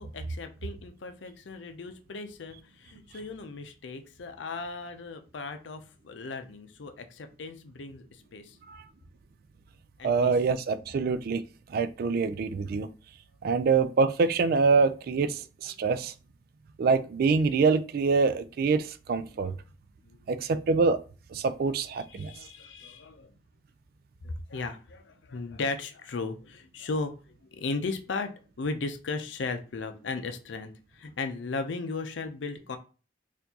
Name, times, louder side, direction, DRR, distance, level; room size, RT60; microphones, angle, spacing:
voice 1, 0.0-8.6 10.0-10.3 15.8-15.9 19.3-19.6 20.0-20.3 21.4-23.3 24.2-32.8, left 3 dB, 85° left, 7 dB, 0.5 m, -37 dB
voice 2, 10.0-11.4 11.7-12.9 13.4-16.1 16.8-19.5 20.3-21.0 21.3-22.3, right 4 dB, 55° right, 13 dB, 0.3 m, -25 dB
4.4 x 2.5 x 2.7 m, 0.35 s
head